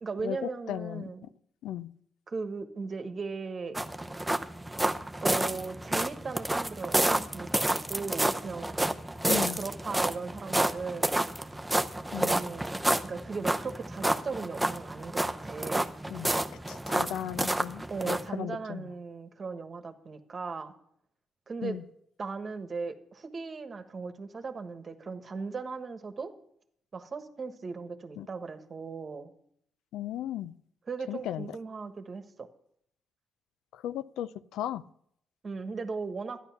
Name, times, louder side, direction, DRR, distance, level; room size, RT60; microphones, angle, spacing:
voice 1, 0.0-1.3 2.3-3.8 5.2-8.8 9.3-11.2 12.2-15.9 17.9-20.7 21.5-21.8 22.2-26.3 26.9-29.3 30.9-32.5 35.4-36.4, right 4 dB, 40° right, 8 dB, 1.3 m, -37 dB
voice 2, 0.7-1.1 1.6-1.9 9.3-9.6 12.1-12.3 16.1-16.3 16.7-18.9 21.6-21.8 28.2-28.3 29.9-30.5 31.1-31.5 33.7-34.8, left 11 dB, 85° left, 15 dB, 0.4 m, -36 dB
sound 1, 3.7-18.3, right 1 dB, 10° right, 0.7 m, -30 dB
12.0 x 10.0 x 5.8 m, 0.69 s
cardioid pair, 90°, 0 cm